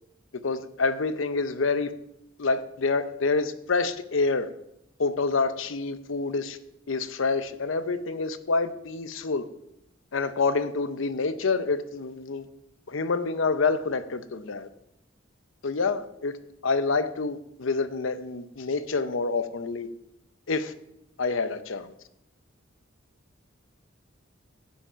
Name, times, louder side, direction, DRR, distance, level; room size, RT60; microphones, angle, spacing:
voice 1, 0.4-1.9 2.4-4.5 5.0-6.6 6.9-9.5 10.1-12.4 12.9-14.7 15.6-16.4 16.6-19.9 20.5-20.7 21.2-21.9, left 4 dB, 75° left, 0.7 m, -27 dB
10.5 x 7.4 x 5.7 m
head